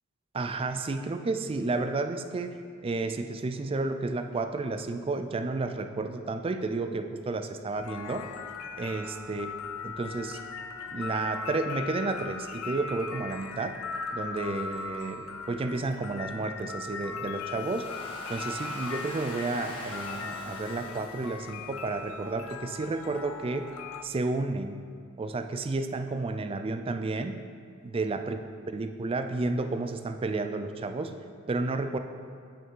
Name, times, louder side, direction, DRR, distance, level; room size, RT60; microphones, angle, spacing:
voice 1, 0.3-8.3 8.8-9.5 9.8-10.4 10.9-13.8 14.1-17.9 18.3-23.7 24.0-24.8 25.2-27.3 27.8-28.4 28.7-31.1 31.5-32.0, right 3 dB, 25° right, 8 dB, 0.3 m, -31 dB
sound 1, 7.7-24.0, left 4 dB, 85° left, 0.5 m, -39 dB
Domestic sounds home sounds, 17.3-22.3, left 1 dB, 25° left, 1.2 m, -44 dB
8.8 x 5.4 x 3.7 m, 2.3 s
head